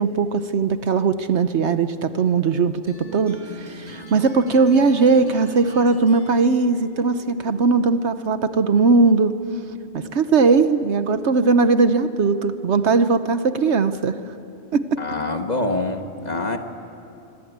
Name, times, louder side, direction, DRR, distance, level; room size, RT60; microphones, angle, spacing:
voice 1, 0.0-9.4 9.9-14.2 14.7-15.0, right 4 dB, 65° right, 11 dB, 1.1 m, -19 dB
sound 1, 2.9-8.0, right 3 dB, 20° right, 5.0 m, -40 dB
voice 2, 15.0-16.6, left 2 dB, 35° left, 5 dB, 1.5 m, -25 dB
25.5 x 23.5 x 8.2 m, 2.8 s
omnidirectional pair, 1.3 m